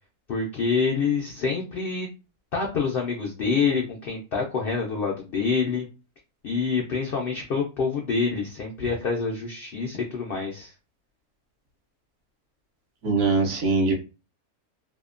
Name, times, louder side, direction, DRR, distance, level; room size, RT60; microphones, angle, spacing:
voice 1, 0.3-2.1 2.5-5.9 6.4-10.7, left 5 dB, 85° left, 1 dB, 0.5 m, -26 dB
voice 2, 13.0-13.9, right 4 dB, 65° right, 3 dB, 0.9 m, -22 dB
2.7 x 2.1 x 2.4 m, 0.30 s
omnidirectional pair, 1.5 m